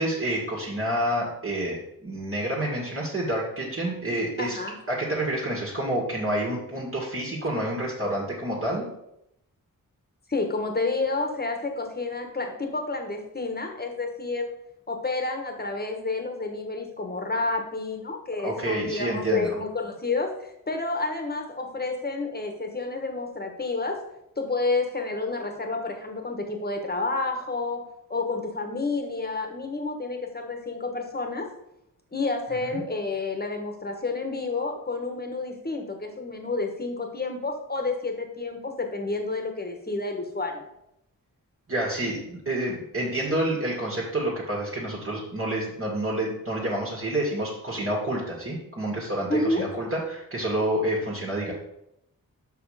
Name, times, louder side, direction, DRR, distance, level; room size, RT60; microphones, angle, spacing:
voice 1, 0.0-4.6 4.9-8.8 18.4-19.5 32.7-32.8 41.7-51.5, right 1 dB, 40° right, -4 dB, 2.0 m, -28 dB
voice 2, 4.4-4.7 10.3-14.5 14.9-24.0 24.4-31.5 32.1-40.6 49.3-49.7, left 3 dB, 25° left, 4 dB, 1.3 m, -30 dB
5.8 x 5.5 x 4.9 m, 0.80 s
wide cardioid pair, 85°, 35 cm